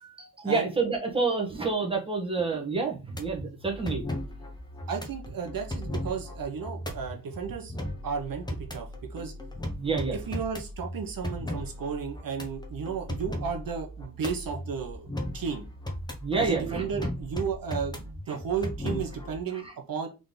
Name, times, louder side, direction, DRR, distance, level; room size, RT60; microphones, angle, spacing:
voice 1, 0.2-4.0 9.8-10.1 16.2-16.8, right 4 dB, 15° right, 0 dB, 1.2 m, -28 dB
sound 1, 3.1-19.4, left 1 dB, 10° left, 0.8 m, -37 dB
voice 2, 4.9-7.7 8.0-9.3 10.1-15.1 15.3-15.6 16.4-20.1, right 6 dB, 70° right, 4 dB, 0.8 m, -33 dB
3.8 x 3.4 x 3.8 m, 0.30 s
wide cardioid pair, 140°, 35 cm